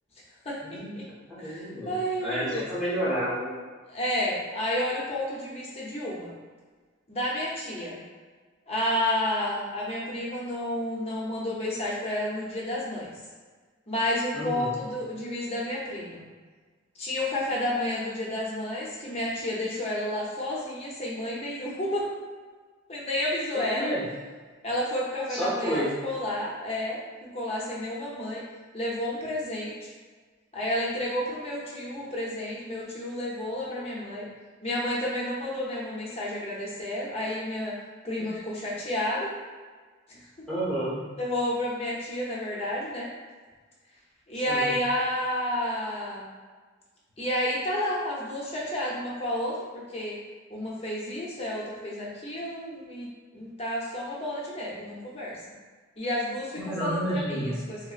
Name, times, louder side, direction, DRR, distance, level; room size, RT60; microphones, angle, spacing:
voice 1, 0.4-1.0 1.4-2.7 3.9-6.3 7.1-8.0 8.7-13.1 13.9-16.2 17.0-22.1 22.9-23.9 24.6-28.4 28.7-29.9 30.5-34.3 34.6-37.7 38.0-39.3 40.1-40.2 41.2-43.1 44.3-46.3 47.2-50.2 50.5-53.1 53.3-55.4 56.0-57.8, left 1 dB, 30° left, -5 dB, 0.7 m, -31 dB
voice 2, 1.3-1.9 2.2-3.5 14.3-14.7 23.5-24.0 25.3-25.9 38.2-38.4 40.5-41.0 44.5-44.7 56.6-57.5, equal, ahead, -11 dB, 1.0 m, -30 dB
2.9 x 2.8 x 2.4 m, 1.4 s
head